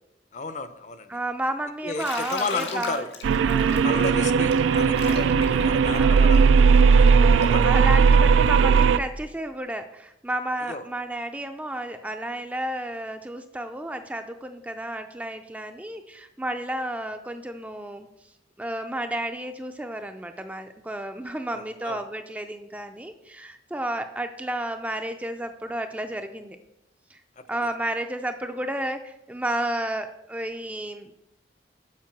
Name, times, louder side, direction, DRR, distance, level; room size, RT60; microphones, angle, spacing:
voice 1, 0.3-1.2 1.8-3.1 3.8-6.7 7.0-7.1 7.4-7.7 10.7-10.8 21.5-22.0 27.4-27.5, left 4 dB, 40° left, 11 dB, 0.6 m, -33 dB
voice 2, 1.1-3.0 3.5-3.9 5.1-5.4 6.0-6.4 7.2-18.1 18.6-26.6 27.1-27.2 27.5-31.1, right 1 dB, 10° right, 7 dB, 0.4 m, -32 dB
Bathtub (filling or washing), 1.9-7.6, left 4 dB, 75° left, 1.8 m, -38 dB
sound 1, 3.2-9.0, right 5 dB, 90° right, 0.3 m, -18 dB
7.4 x 5.2 x 7.2 m, 0.88 s
head